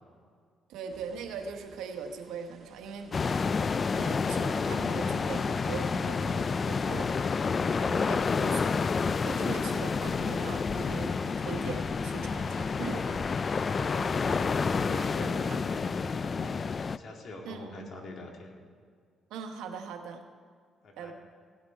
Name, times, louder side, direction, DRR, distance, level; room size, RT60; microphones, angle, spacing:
voice 1, 0.7-3.1 3.9-8.8 9.2-13.6 17.4-17.9 19.3-20.2 21.0-21.1, right 6 dB, 90° right, 5 dB, 1.2 m, -41 dB
sound 1, 0.9-15.6, right 5 dB, 50° right, 1.3 m, -56 dB
sound 2, 3.1-17.0, left 5 dB, 40° left, 0.3 m, -29 dB
voice 2, 13.5-16.6 16.9-18.5 20.8-21.1, left 2 dB, 60° left, 1 dB, 2.3 m, -43 dB
16.5 x 8.7 x 4.6 m, 2.1 s
cardioid pair, 90°, 0 cm